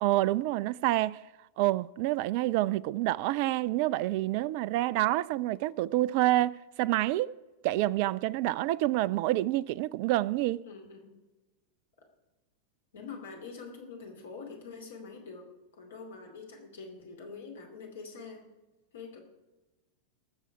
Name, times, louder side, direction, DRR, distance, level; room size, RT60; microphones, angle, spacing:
voice 1, 0.0-1.2 1.6-7.3 7.6-10.6, right 16 dB, 45° right, 0.3 m, -28 dB
voice 2, 10.6-11.1 12.9-15.5 15.7-18.4 18.9-19.2, left 4 dB, 60° left, 2.7 m, -45 dB
20.5 x 6.9 x 4.7 m
figure-of-eight pair, 90°, 0 cm